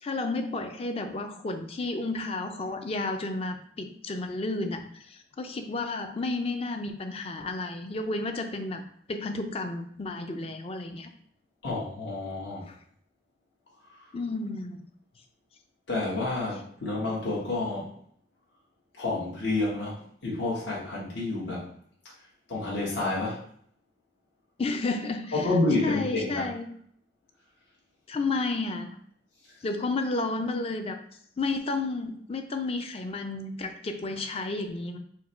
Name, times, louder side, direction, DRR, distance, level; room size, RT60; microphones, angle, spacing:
voice 1, 0.0-8.8 9.1-11.1 12.7-12.8 14.1-14.9 24.6-25.5 25.8-26.7 28.1-28.9 29.6-31.0 31.4-35.0, left 3 dB, 30° left, 6 dB, 0.4 m, -32 dB
voice 2, 11.6-12.6 15.9-17.9 19.0-21.7 22.5-23.4 25.3-26.5, left 2 dB, 70° left, -5 dB, 1.2 m, -29 dB
4.5 x 2.2 x 4.2 m, 0.62 s
head